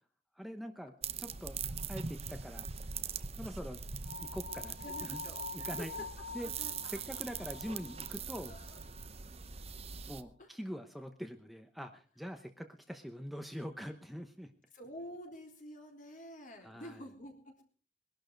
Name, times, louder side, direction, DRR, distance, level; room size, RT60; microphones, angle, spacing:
voice 1, 0.4-1.6 1.9-2.7 3.4-3.8 4.1-5.2 5.5-5.9 6.3-6.5 6.8-8.5 10.1-14.5 16.6-17.0, equal, ahead, 6 dB, 0.9 m, -44 dB
sound 1, 1.0-10.2, right 6 dB, 35° right, 0.9 m, -42 dB
sound 2, 4.0-9.1, left 5 dB, 80° left, 1.1 m, -47 dB
voice 2, 4.6-7.2 8.5-8.8 10.4-10.5 14.7-17.6, left 1 dB, 50° left, 2 dB, 3.7 m, -49 dB
21.0 x 12.0 x 4.6 m, 0.41 s
head